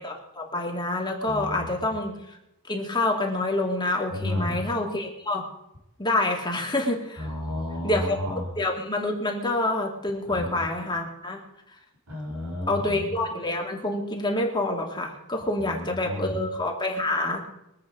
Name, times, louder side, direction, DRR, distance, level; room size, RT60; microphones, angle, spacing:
voice 1, 0.0-2.4 2.7-5.4 6.0-7.3 7.8-8.2 8.6-11.4 12.7-17.5, left 2 dB, 20° left, 0 dB, 2.4 m, -27 dB
voice 2, 1.3-1.7 4.1-4.6 7.2-8.5 10.3-10.7 12.1-13.1 15.7-16.4, left 1 dB, 80° right, -2 dB, 3.6 m, -32 dB
23.0 x 8.4 x 5.0 m, 0.86 s
head